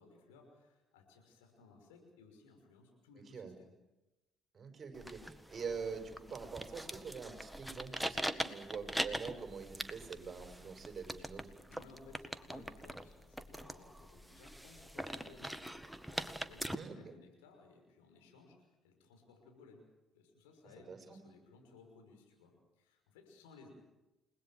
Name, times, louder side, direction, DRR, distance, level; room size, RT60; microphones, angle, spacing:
voice 1, 0.0-3.7 11.7-15.8 16.1-19.8 20.1-23.7, left 4 dB, 80° left, 3 dB, 5.9 m, -60 dB
voice 2, 4.5-11.5 16.7-17.1 20.9-21.2, right 5 dB, 40° right, 5 dB, 5.4 m, -45 dB
sound 1, 4.9-16.8, equal, 5° right, 1.7 m, -42 dB
29.5 x 20.0 x 7.6 m, 1.0 s
hypercardioid pair, 50°, 0 cm